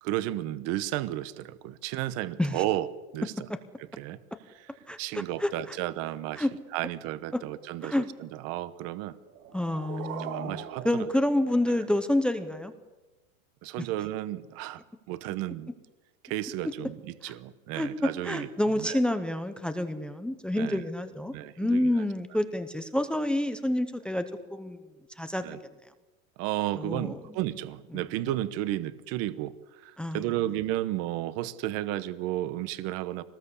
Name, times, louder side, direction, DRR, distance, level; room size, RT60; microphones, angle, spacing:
voice 1, 0.0-2.9 3.1-3.3 4.0-4.2 5.0-6.5 6.7-9.2 10.2-10.9 11.7-11.8 13.6-14.8 15.1-15.7 16.2-19.0 20.5-20.8 21.3-22.0 25.4-25.6 26.4-29.6 29.8-33.2, right 14 dB, 35° right, 15 dB, 1.0 m, -33 dB
voice 2, 4.9-5.8 6.4-6.5 7.8-8.1 9.5-12.7 17.2-17.3 17.7-24.2 24.5-24.8 25.2-25.4 26.8-27.2 27.9-28.0 30.0-30.2, left 1 dB, ahead, 9 dB, 0.7 m, -28 dB
sound 1, 9.2-12.2, right 10 dB, 85° right, 2.5 m, -41 dB
24.5 x 19.5 x 8.3 m, 1.1 s
supercardioid pair, 170°, 42 cm